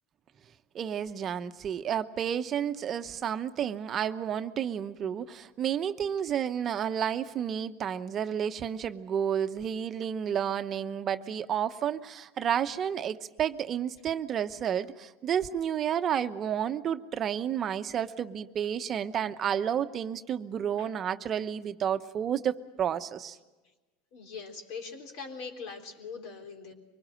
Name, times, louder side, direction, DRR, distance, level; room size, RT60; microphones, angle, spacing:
voice 1, 0.7-23.4, right 9 dB, 35° right, 9 dB, 0.9 m, -31 dB
voice 2, 24.1-26.7, left 5 dB, 65° left, 3 dB, 3.6 m, -42 dB
24.0 x 19.5 x 7.8 m, 1.2 s
supercardioid pair, 110°, 0 cm